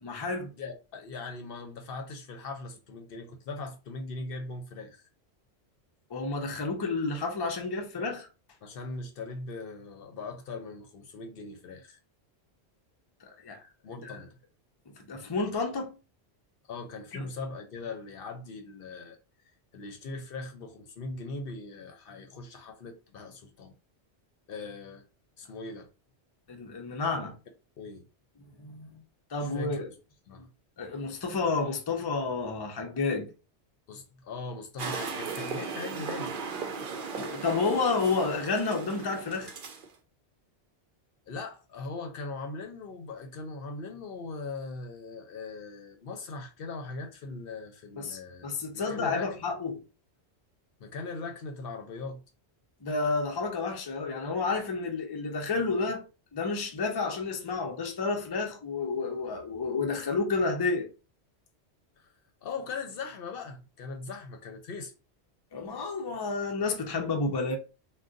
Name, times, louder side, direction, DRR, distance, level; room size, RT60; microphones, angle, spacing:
voice 1, 0.0-0.5 6.1-8.3 13.2-13.6 14.0-14.2 15.0-15.9 17.1-17.3 26.5-27.4 28.6-28.9 29.3-29.9 30.8-33.3 37.2-39.5 48.0-49.8 52.8-56.0 56.3-60.9 65.5-67.6, left 4 dB, 35° left, 0.4 m, -30 dB
voice 2, 0.5-5.1 8.6-12.0 13.8-14.3 16.7-19.2 19.7-23.7 24.5-25.0 25.4-25.9 27.8-28.1 29.4-30.0 30.3-30.5 33.9-36.4 41.3-49.5 50.8-52.2 62.0-62.1 62.4-64.9, left 3 dB, 60° left, 0.7 m, -40 dB
sound 1, 34.8-39.9, right 5 dB, 55° right, 0.7 m, -37 dB
2.5 x 2.2 x 3.7 m
omnidirectional pair, 1.1 m